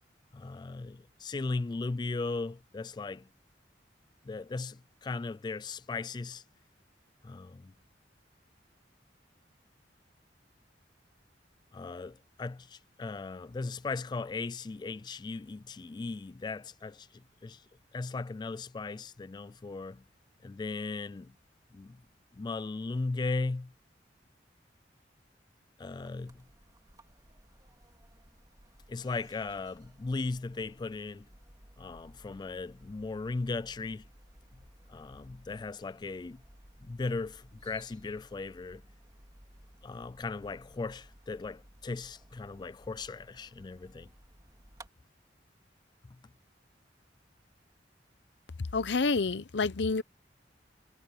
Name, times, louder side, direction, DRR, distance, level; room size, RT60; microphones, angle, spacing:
voice 1, 0.3-3.3 4.3-6.4 7.2-7.7 11.7-17.6 17.9-20.0 20.4-21.3 21.7-22.0 22.3-23.7 25.8-26.4 28.9-31.3 31.8-34.1 34.9-36.4 36.8-38.8 39.8-44.1, left 3 dB, 25° left, 0.3 m, -37 dB
sound 1, 26.0-44.9, right 1 dB, 20° right, 2.5 m, -58 dB
voice 2, 48.7-50.0, left 4 dB, 80° left, 0.7 m, -28 dB
head